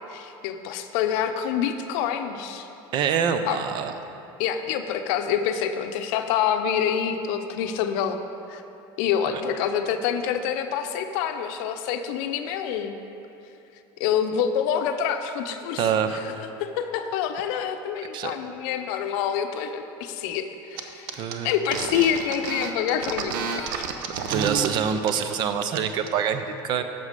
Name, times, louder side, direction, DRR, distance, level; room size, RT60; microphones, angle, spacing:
voice 1, 0.1-2.7 3.4-3.6 4.4-8.2 8.5-8.6 9.0-13.0 14.0-16.3 16.6-23.7, left 8 dB, 75° left, 7 dB, 0.6 m, -27 dB
voice 2, 2.9-3.9 9.3-9.4 15.8-16.2 18.1-18.3 21.1-21.5 23.7-23.8 24.3-26.8, right 7 dB, 45° right, 9 dB, 0.5 m, -25 dB
sound 1, 20.8-20.9 21.1-24.7 25.0-25.3 25.6-26.1, right 6 dB, 90° right, 0.7 m, -30 dB
8.1 x 6.9 x 5.2 m, 2.9 s
cardioid pair, 145°, 11 cm